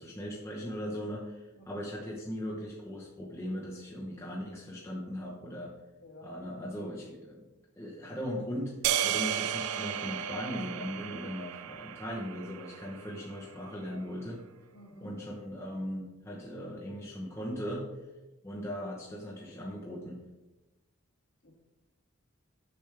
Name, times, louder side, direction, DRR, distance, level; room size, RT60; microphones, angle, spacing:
voice 1, 0.0-5.7 6.2-7.4 7.8-8.7 9.0-14.4 15.0-17.8 18.4-20.2, equal, 10° left, -4 dB, 0.8 m, -38 dB
sound 1, 8.8-13.2, right 10 dB, 80° right, 0.4 m, -34 dB
voice 2, 14.7-15.1 21.4-21.5, left 1 dB, 55° left, -4 dB, 2.2 m, -52 dB
6.7 x 6.1 x 3.3 m, 1.1 s
head